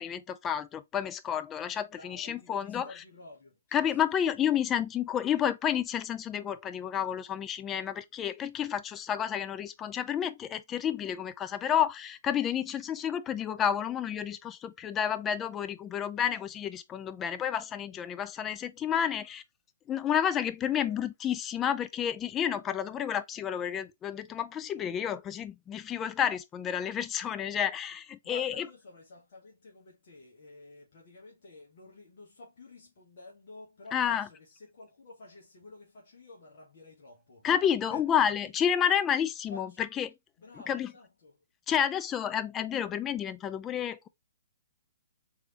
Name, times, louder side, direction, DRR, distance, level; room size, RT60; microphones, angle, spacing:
voice 1, 0.0-2.9 3.7-19.4 19.9-28.7 33.9-34.3 37.4-40.1 40.7-40.9 41.7-44.1, left 9 dB, 20° left, 0.4 m, -30 dB
voice 2, 1.9-3.9 4.2-4.3 8.5-8.7 18.8-19.3 20.6-21.0 28.2-37.5 37.9-38.1 38.4-38.5 39.5-39.8 40.4-41.4, left 2 dB, 55° left, 1.3 m, -51 dB
3.5 x 3.3 x 2.9 m
figure-of-eight pair, 125°, 0 cm